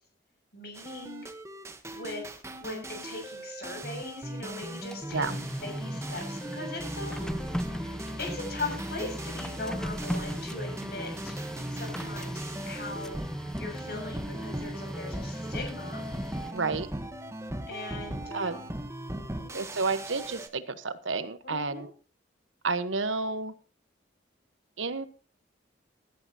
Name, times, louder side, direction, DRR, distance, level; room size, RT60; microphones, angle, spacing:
voice 1, 0.5-1.3 1.9-2.3 2.6-7.9 8.2-11.3 11.7-13.2 13.6-16.0 17.7-19.6 21.4-21.9, left 3 dB, 55° left, 3 dB, 6.7 m, -40 dB
sound 1, 0.7-20.5, right 1 dB, 15° right, 1.1 m, -38 dB
Printer, 4.7-16.8, equal, 5° left, 0.6 m, -38 dB
voice 2, 16.5-16.9 18.3-18.6 19.5-21.9 22.6-23.5 24.8-25.1, right 4 dB, 90° right, 11 dB, 1.2 m, -30 dB
17.5 x 11.5 x 2.9 m, 0.38 s
head